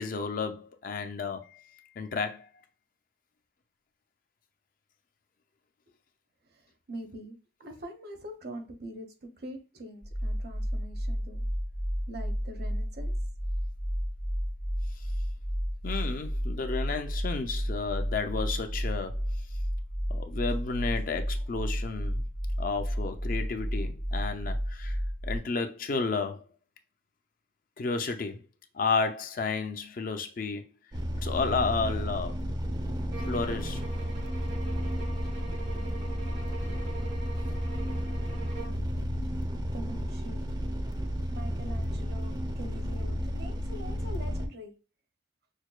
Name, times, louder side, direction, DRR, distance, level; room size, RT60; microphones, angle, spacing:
voice 1, 0.0-1.7 2.0-2.5 15.8-19.2 20.1-22.3 22.6-25.0 25.2-26.4 27.8-28.4 28.7-30.7 31.2-32.4 33.2-33.8, left 4 dB, 50° left, 0.5 m, -32 dB
voice 2, 6.9-7.3 7.6-11.4 12.1-13.1 39.7-40.4 41.3-44.7, right 1 dB, 60° right, 0.8 m, -43 dB
sound 1, 10.0-25.4, equal, 70° left, 1.7 m, -32 dB
sound 2, 30.9-44.5, equal, 25° right, 0.4 m, -32 dB
sound 3, 33.1-38.9, right 4 dB, 90° right, 0.9 m, -44 dB
6.3 x 2.2 x 2.3 m
head